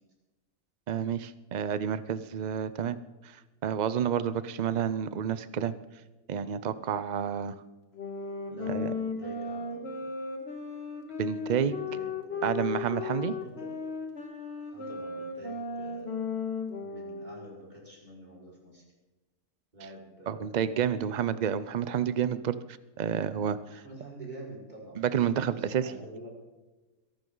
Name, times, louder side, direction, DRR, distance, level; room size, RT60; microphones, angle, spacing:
voice 1, 0.9-3.0 3.2-5.7 6.3-7.6 8.7-8.9 11.2-11.8 12.4-13.3 20.3-22.6 23.0-23.8 25.0-25.9, right 8 dB, 70° right, 14 dB, 0.4 m, -29 dB
sound 1, 7.9-17.6, left 4 dB, 40° left, 2.0 m, -36 dB
voice 2, 8.5-10.1 11.6-12.5 13.2-13.7 14.7-16.4 16.8-18.8 19.7-20.7 23.7-25.1 25.5-26.4, right 1 dB, 30° right, -3 dB, 5.0 m, -47 dB
23.0 x 11.5 x 3.9 m, 1.1 s
omnidirectional pair, 1.6 m